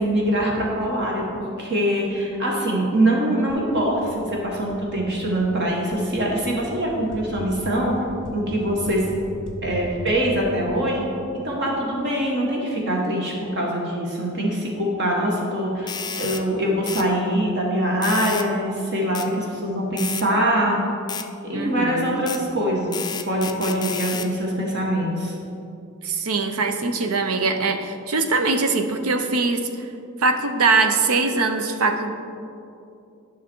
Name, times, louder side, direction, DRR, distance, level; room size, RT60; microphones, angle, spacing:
voice 1, 0.0-7.9 8.3-9.0 9.6-11.0 11.3-15.9 16.2-20.8 21.4-25.3, right 1 dB, 55° right, -2 dB, 1.6 m, -23 dB
sound 1, 3.5-12.2, equal, 5° left, 1.4 m, -39 dB
sound 2, 15.9-16.4 16.9-17.1 18.0-18.5 19.2-19.3 20.0-20.3 21.1-21.3 22.3-22.4 22.9-24.3, left 7 dB, 20° left, 0.3 m, -31 dB
voice 2, 21.5-22.2 26.0-29.9 30.2-32.1, right 3 dB, 75° right, 7 dB, 0.7 m, -22 dB
11.0 x 6.0 x 4.5 m, 2.7 s
head